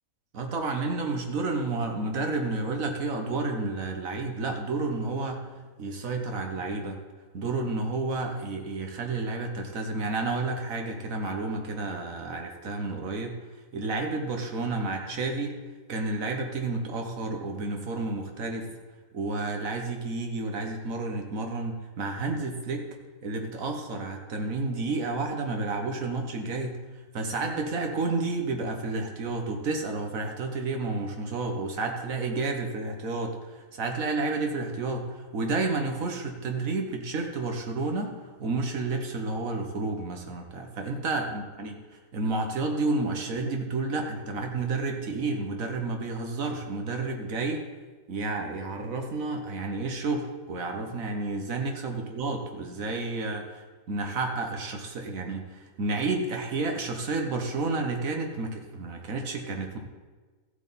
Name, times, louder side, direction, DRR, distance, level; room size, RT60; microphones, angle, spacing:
voice 1, 0.3-5.5 5.8-7.0 7.3-13.4 13.7-15.6 15.9-18.8 19.1-22.9 23.2-26.8 27.1-41.8 42.1-47.7 48.1-59.8, right 3 dB, 90° right, 3 dB, 1.6 m, -31 dB
14.5 x 8.0 x 4.2 m, 1.3 s
omnidirectional pair, 1.4 m